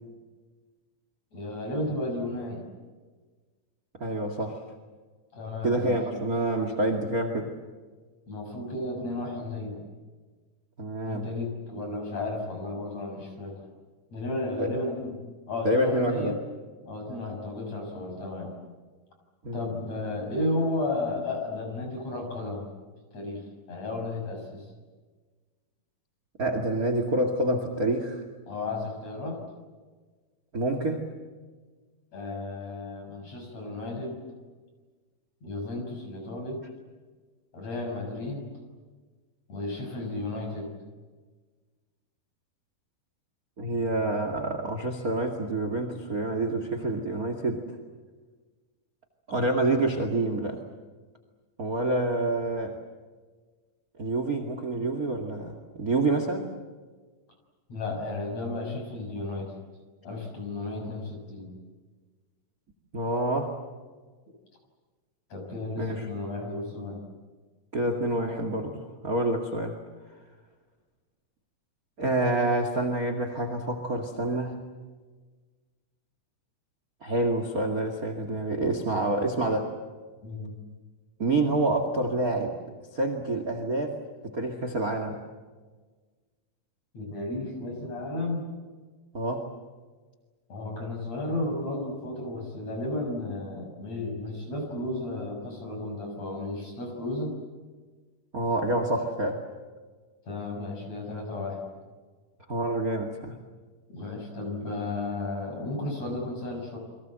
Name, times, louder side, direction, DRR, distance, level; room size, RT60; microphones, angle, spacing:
voice 1, 1.3-2.7 5.3-6.0 8.3-9.8 11.0-13.7 14.1-15.2 15.5-16.4 16.8-18.6 19.5-22.7 23.1-24.7 28.5-29.4 32.1-34.2 35.4-36.6 37.5-38.5 39.5-40.7 57.7-59.5 60.0-61.5 65.3-67.0 80.2-80.6 86.9-88.5 90.5-97.3 100.3-101.7 103.9-106.8, left 2 dB, 40° left, 2 dB, 7.5 m, -33 dB
voice 2, 4.0-4.6 5.6-7.5 10.8-11.2 14.6-14.8 15.6-16.4 19.4-19.7 26.4-28.2 30.5-31.1 43.6-47.6 49.3-50.6 51.6-52.8 54.0-56.5 62.9-63.5 65.8-66.1 67.7-69.8 72.0-74.6 77.0-79.7 81.2-82.5 82.9-84.0 84.2-85.2 89.1-89.4 98.3-99.4 102.5-103.4, right 2 dB, 30° right, 6 dB, 1.7 m, -27 dB
30.0 x 23.5 x 7.7 m, 1.4 s
omnidirectional pair, 4.8 m